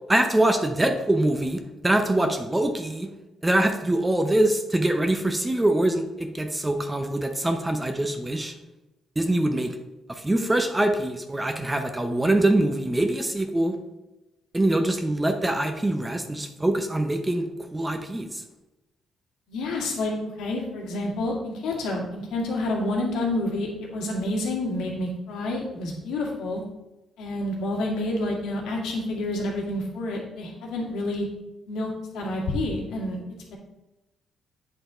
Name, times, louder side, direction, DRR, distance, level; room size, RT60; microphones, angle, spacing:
voice 1, 0.1-3.1 3.4-8.5 9.2-9.8 10.1-13.8 14.5-18.4, right 1 dB, 15° right, 6 dB, 0.7 m, -24 dB
voice 2, 19.5-26.6 27.2-31.3 31.7-33.2, left 1 dB, 80° left, -2 dB, 2.0 m, -29 dB
8.0 x 4.0 x 5.0 m, 1.0 s
cardioid pair, 90°, 0 cm